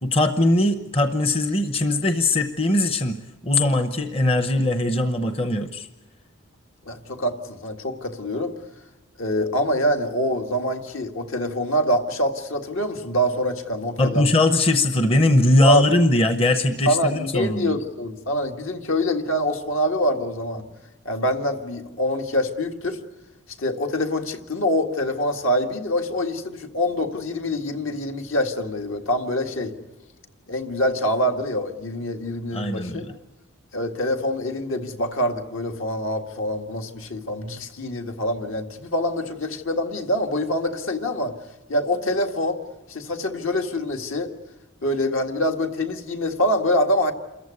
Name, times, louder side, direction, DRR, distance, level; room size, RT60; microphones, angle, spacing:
voice 1, 0.0-3.2 3.4-5.9 14.0-17.8 32.5-33.1, left 2 dB, 25° left, 8 dB, 0.8 m, -20 dB
voice 2, 6.9-8.5 9.2-14.3 15.6-15.9 16.9-20.6 21.1-23.0 23.6-29.7 30.5-33.0 33.7-41.3 41.7-42.6 42.9-44.3 44.8-47.1, left 1 dB, 70° left, 4 dB, 1.9 m, -25 dB
27.5 x 14.5 x 9.7 m, 1.1 s
head